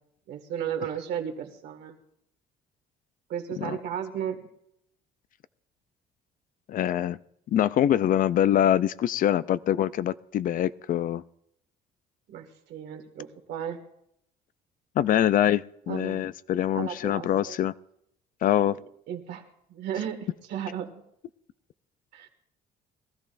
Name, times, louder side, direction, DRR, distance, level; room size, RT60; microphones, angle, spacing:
voice 1, 0.3-2.0 3.3-4.4 12.3-13.8 15.9-16.3 16.7-17.6 19.1-21.0 22.1-22.3, right 9 dB, 75° right, 5 dB, 2.0 m, -34 dB
voice 2, 6.7-7.2 7.5-11.2 15.0-17.7 18.4-18.8, left 11 dB, 55° left, 16 dB, 0.5 m, -24 dB
22.0 x 13.5 x 2.6 m, 0.74 s
cardioid pair, 110°, 17 cm